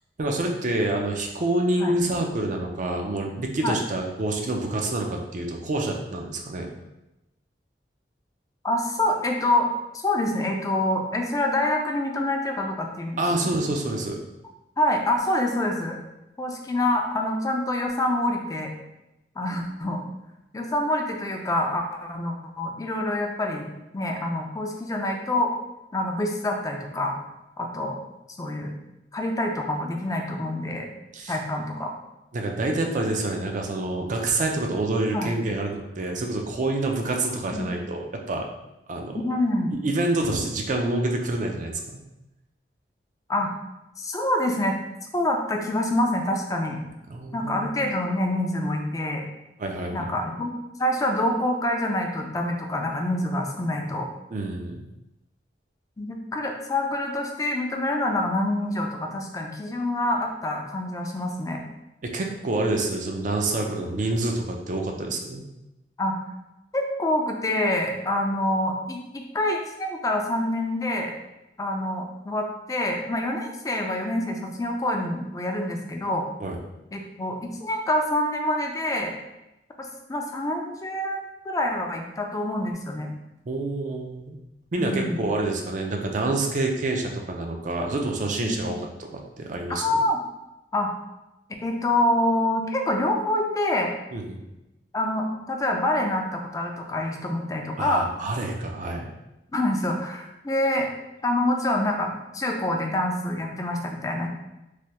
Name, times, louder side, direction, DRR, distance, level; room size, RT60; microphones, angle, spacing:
voice 1, 0.2-6.7 13.2-14.2 31.1-31.4 32.3-38.5 38.9-39.2 39.8-41.7 47.1-47.7 49.6-50.2 54.3-54.7 62.1-65.4 76.4-76.6 83.5-84.4 84.7-90.0 94.1-94.4 97.8-99.1, right 2 dB, 45° right, 2 dB, 0.4 m, -27 dB
voice 2, 8.6-13.6 14.8-16.0 16.4-18.7 19.4-20.0 20.5-25.5 25.9-27.2 27.6-28.0 28.4-28.7 29.1-30.9 31.3-31.9 35.1-35.3 37.5-37.7 39.1-39.8 43.3-43.5 44.0-44.8 45.1-46.8 47.3-49.2 49.9-50.5 50.8-54.1 56.0-61.6 63.7-63.8 65.0-65.1 66.0-66.1 66.7-71.1 71.6-76.2 76.9-79.1 79.8-83.1 84.8-85.2 86.2-86.3 88.4-88.7 89.7-90.2 90.7-90.9 91.6-93.9 94.9-98.1 99.5-100.9 101.2-104.3, left 1 dB, 20° left, 2 dB, 0.4 m, -26 dB
3.2 x 2.2 x 2.8 m, 0.94 s
head